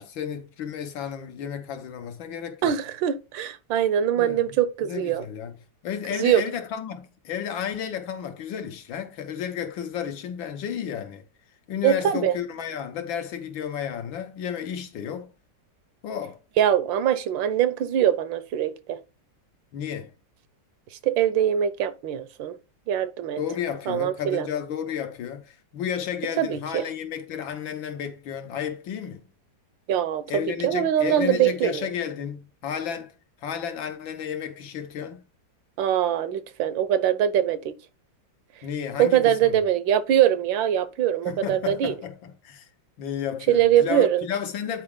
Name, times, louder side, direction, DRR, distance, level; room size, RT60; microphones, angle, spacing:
voice 1, 0.0-2.8 4.2-11.2 11.7-15.3 16.0-16.4 19.7-20.1 23.4-29.3 30.3-33.1 33.4-35.2 38.6-39.6 41.3-42.7 43.0-44.8, left 8 dB, 80° left, 1.8 m, -32 dB
voice 2, 2.6-5.2 6.2-6.4 11.8-12.3 16.6-19.0 21.0-22.6 22.9-23.4 23.9-24.5 26.4-26.8 29.9-30.2 30.6-31.9 35.8-37.7 39.0-41.9 43.5-44.2, right 10 dB, 75° right, 1.4 m, -22 dB
9.2 x 4.8 x 3.7 m
omnidirectional pair, 2.1 m